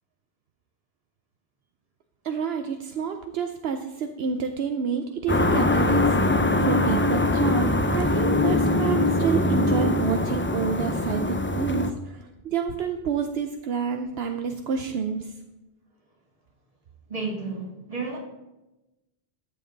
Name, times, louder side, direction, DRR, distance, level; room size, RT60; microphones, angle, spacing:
voice 1, 2.2-15.3, right 6 dB, 75° right, 6 dB, 0.9 m, -29 dB
sound 1, 5.3-11.9, left 2 dB, 20° left, 0.3 m, -22 dB
voice 2, 17.1-18.2, right 3 dB, 35° right, -1 dB, 2.0 m, -32 dB
13.5 x 7.7 x 4.0 m, 1.0 s
omnidirectional pair, 1.1 m